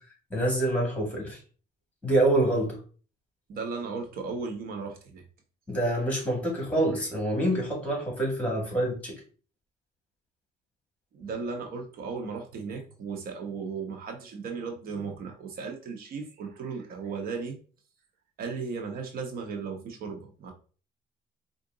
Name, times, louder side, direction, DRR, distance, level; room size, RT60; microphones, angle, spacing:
voice 1, 0.3-1.4 2.0-2.8 5.7-9.1, right 1 dB, 10° left, 0 dB, 2.3 m, -26 dB
voice 2, 3.5-5.2 11.1-17.6 18.4-20.5, right 5 dB, 60° right, 3 dB, 0.9 m, -36 dB
4.6 x 2.6 x 3.8 m, 0.39 s
cardioid pair, 110°, 17 cm